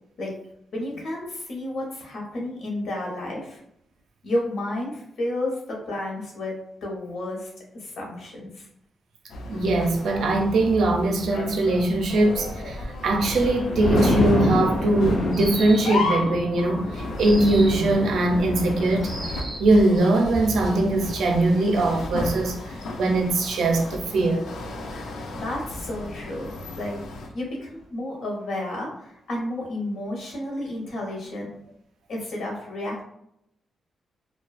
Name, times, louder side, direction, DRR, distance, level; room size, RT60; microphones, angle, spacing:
voice 1, 0.7-3.6 4.2-8.7 24.9-25.1 25.3-26.5 26.8-27.0 27.3-31.5 32.1-33.0, left 1 dB, 70° left, 0.8 m, -31 dB
sound 1, 9.3-27.3, left 2 dB, 85° left, 0.4 m, -34 dB
voice 2, 9.5-19.3 19.6-24.5, right 2 dB, 75° right, 0.4 m, -21 dB
Thunder, 12.7-24.2 24.6-24.9, left 1 dB, 35° left, 0.6 m, -30 dB
sound 2, 15.3-16.1 17.2-17.9 19.0-19.7, right 2 dB, 20° right, 0.6 m, -36 dB
2.4 x 2.2 x 2.3 m
wide cardioid pair, 155°, 0 cm